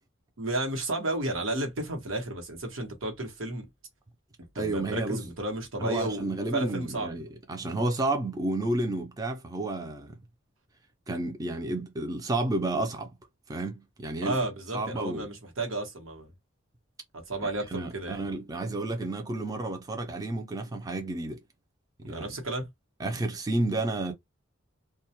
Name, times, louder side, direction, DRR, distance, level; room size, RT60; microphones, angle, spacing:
voice 1, 0.4-3.7 4.5-6.2 6.5-7.2 14.2-16.3 17.1-18.3 22.1-22.7, right 2 dB, 85° right, 0.9 m, -32 dB
voice 2, 4.6-5.2 5.8-10.1 11.1-13.1 13.5-14.4 14.7-15.3 17.4-21.4 22.1-22.3 23.0-24.1, right 2 dB, 20° right, 0.4 m, -31 dB
2.2 x 2.1 x 2.8 m
head